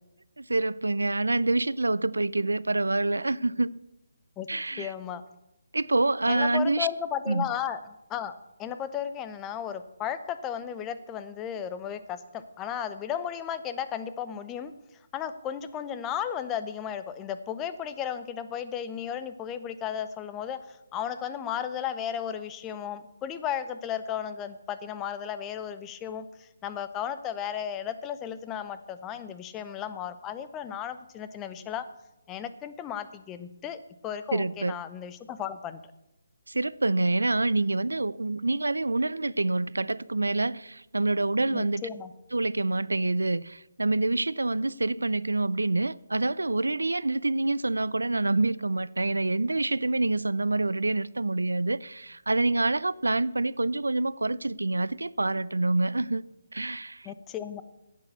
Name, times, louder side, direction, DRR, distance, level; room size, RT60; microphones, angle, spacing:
voice 1, 0.4-3.8 4.5-4.9 5.7-6.9 7.3-7.5 34.3-34.7 36.5-41.9 42.3-56.3 56.5-57.1, right 2 dB, 85° right, 0.4 m, -27 dB
voice 2, 4.8-5.2 6.3-14.7 15.1-31.8 32.3-35.8 41.5-42.1 57.0-57.6, left 9 dB, 15° left, 0.7 m, -34 dB
10.5 x 8.3 x 6.7 m
figure-of-eight pair, 150°, 0 cm